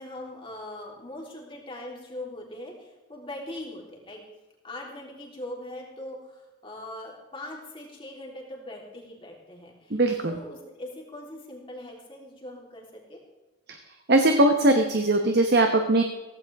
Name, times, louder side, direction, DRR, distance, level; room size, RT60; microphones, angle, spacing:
voice 1, 0.0-4.2 4.6-13.2, left 1 dB, 25° left, -1 dB, 3.5 m, -41 dB
voice 2, 9.9-10.4 13.7-13.8 14.1-16.0, right 2 dB, 50° right, 5 dB, 1.1 m, -20 dB
16.5 x 16.0 x 3.6 m, 1.1 s
head